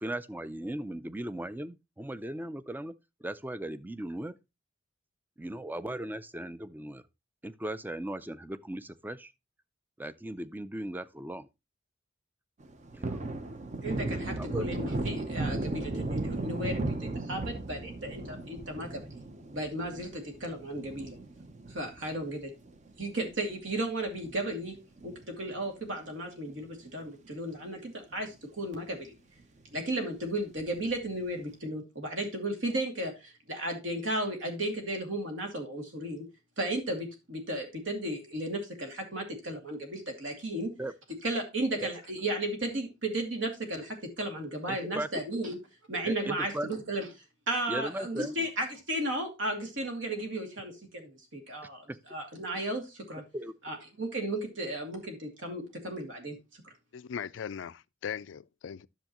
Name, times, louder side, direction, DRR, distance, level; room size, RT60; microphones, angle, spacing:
voice 1, 0.0-2.9 3.2-4.4 5.4-7.0 7.4-9.3 10.0-11.5 12.9-13.2 14.4-14.8 15.9-16.0 40.8-40.9 41.8-41.9 44.7-45.1 46.0-46.7 47.7-48.3 51.9-52.0 53.3-53.5, right 1 dB, 10° right, 0.4 m, -37 dB
Thunder, 12.6-23.3 23.7-23.8 24.2-25.7 26.0-26.1 26.5-27.3 27.7-27.8 28.1-28.2 30.6-31.1, right 2 dB, 40° right, 0.8 m, -36 dB
voice 2, 13.8-19.0 19.5-21.2 21.7-22.5 23.0-24.8 25.0-29.1 29.7-36.3 36.6-40.7 41.2-45.6 45.9-47.1 47.5-53.2 53.6-56.4 56.6-56.7, right 1 dB, 70° right, 2.4 m, -34 dB
voice 3, 56.9-58.9, left 7 dB, 70° left, 0.4 m, -39 dB
10.5 x 7.1 x 3.0 m
head